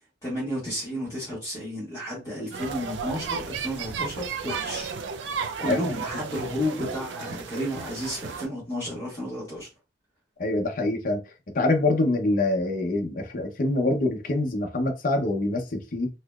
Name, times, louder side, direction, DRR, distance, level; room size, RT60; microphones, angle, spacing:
voice 1, 0.2-4.9 5.6-9.7, equal, 20° left, 1.9 m, -32 dB
sound 1, 2.5-8.5, right 6 dB, 70° right, 0.5 m, -34 dB
voice 2, 10.4-11.2 11.5-16.1, left 2 dB, 45° left, 0.7 m, -25 dB
4.2 x 2.9 x 2.4 m
head